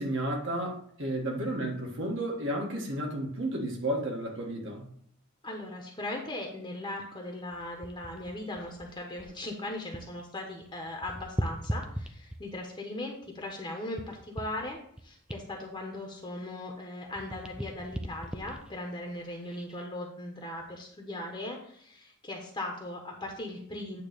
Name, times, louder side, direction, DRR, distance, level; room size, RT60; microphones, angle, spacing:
voice 1, 0.0-4.9, right 1 dB, 60° right, 0 dB, 1.7 m, -32 dB
voice 2, 5.4-24.0, left 1 dB, 20° left, 0 dB, 1.1 m, -39 dB
sound 1, 7.5-10.3 10.5-12.7 13.2-16.8 17.1-19.9 20.4-20.6, equal, 5° right, 0.5 m, -39 dB
9.2 x 3.1 x 6.7 m, 0.65 s
head